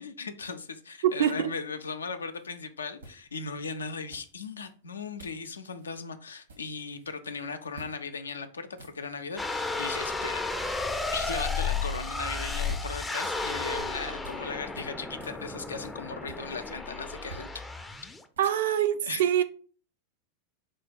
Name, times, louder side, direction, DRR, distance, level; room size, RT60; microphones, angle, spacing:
voice 1, 0.0-10.4 11.1-17.6 19.0-19.4, left 4 dB, 70° left, 0.4 m, -37 dB
voice 2, 1.0-1.5 18.4-19.4, right 10 dB, 55° right, 0.4 m, -25 dB
sound 1, 2.3-2.5 3.0-3.6 4.1-4.7 5.2-5.5 5.7-5.9 6.2-7.1 7.7-8.0 8.3-8.4 8.7-9.4 12.2-14.5 14.7-16.8 17.1-18.8, right 4 dB, 75° right, 1.0 m, -50 dB
sound 2, 9.4-18.2, left 3 dB, 10° left, 0.4 m, -33 dB
4.4 x 2.2 x 4.3 m
figure-of-eight pair, 90°, 0 cm